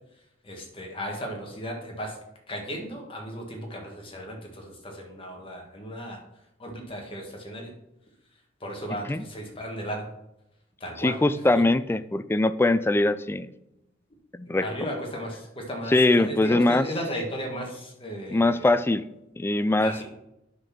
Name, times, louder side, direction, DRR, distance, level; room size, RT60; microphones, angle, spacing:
voice 1, 0.4-2.2 2.5-6.2 6.6-7.7 8.6-10.1 10.8-11.4 14.5-18.7 19.8-20.0, equal, 30° left, 1 dB, 1.7 m, -35 dB
voice 2, 11.0-13.6 14.3-14.7 15.9-16.8 18.3-19.0 19.4-19.9, left 2 dB, 10° left, 13 dB, 0.3 m, -22 dB
9.4 x 4.2 x 6.0 m, 0.86 s
head